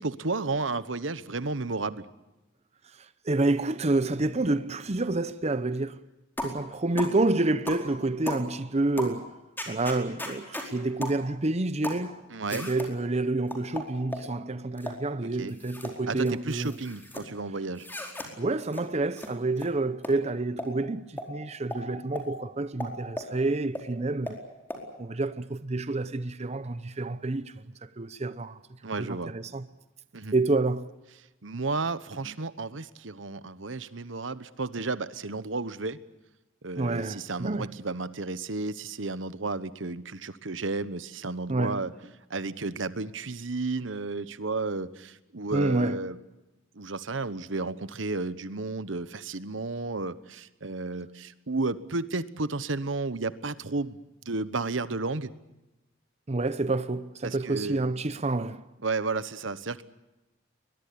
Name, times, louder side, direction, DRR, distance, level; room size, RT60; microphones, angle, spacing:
voice 1, 0.0-2.0 12.3-12.7 15.2-15.5 16.1-17.9 28.8-29.3 30.1-30.3 31.4-36.0 36.6-41.9 42.3-46.2 46.8-54.0 54.3-55.3 57.2-57.8 58.8-59.8, right 3 dB, 80° right, 1.2 m, -32 dB
voice 2, 2.9-6.0 6.4-9.3 9.7-12.2 12.5-16.8 18.4-24.4 25.0-28.6 29.0-29.6 30.3-30.9 32.2-32.3 36.8-37.8 41.5-42.0 45.5-46.1 56.3-58.7, right 2 dB, 35° right, 0.8 m, -28 dB
sound 1, 6.4-6.6 7.0-7.2 7.7-7.9 8.3-8.5 9.0-9.2 9.6-10.7 11.0-11.2 11.8-12.0 12.5-12.9 13.5-14.3 14.8-15.0 15.5-16.0 16.3-17.2 17.8-18.3 18.7-18.8 19.2-19.3 19.6-19.7 20.0-20.1 20.6-20.7 21.2-21.3 21.7-21.8 22.2-22.3 22.8-23.3 23.7-23.8 24.3-24.4 24.7-24.8, left 1 dB, 10° left, 4.6 m, -36 dB
23.0 x 21.5 x 8.5 m
head